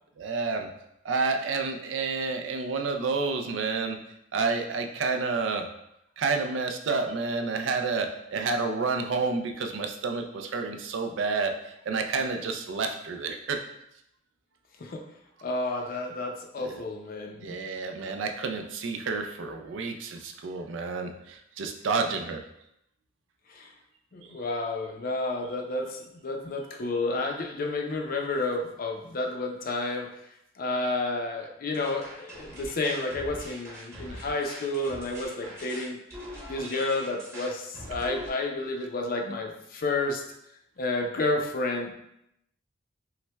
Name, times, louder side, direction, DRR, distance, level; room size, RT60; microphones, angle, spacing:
voice 1, 0.2-0.7 1.0-4.0 4.3-5.7 6.2-13.6 16.6-16.8 17.4-22.4 33.9-34.2, right 4 dB, 75° right, 4 dB, 0.4 m, -30 dB
voice 2, 15.4-17.5 23.5-23.7 24.1-30.1 30.6-36.0 36.5-40.2 40.8-41.9, left 2 dB, 50° left, 2 dB, 0.5 m, -30 dB
sound 1, 31.7-38.3, equal, 15° right, 0.9 m, -42 dB
5.5 x 2.1 x 2.2 m, 0.80 s
head